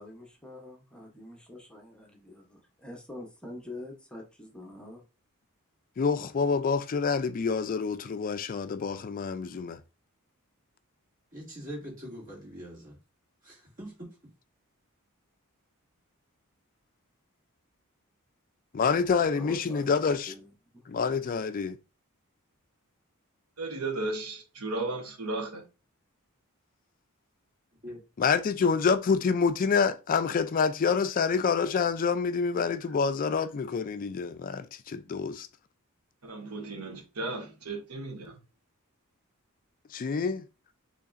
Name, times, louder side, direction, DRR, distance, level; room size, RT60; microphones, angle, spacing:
voice 1, 0.0-5.0 19.4-19.9 20.3-20.5 20.7-20.9 32.9-33.0, left 1 dB, 5° left, 0.8 m, -45 dB
voice 2, 6.0-9.8 18.7-20.3 20.9-21.8 28.2-35.5 39.9-40.4, left 5 dB, 40° left, 0.4 m, -27 dB
voice 3, 11.3-13.0 13.4-14.1 27.8-28.0, equal, 40° right, 2.4 m, -42 dB
voice 4, 23.6-25.6 36.2-38.4, right 2 dB, 90° right, 1.1 m, -35 dB
6.7 x 3.1 x 2.5 m
head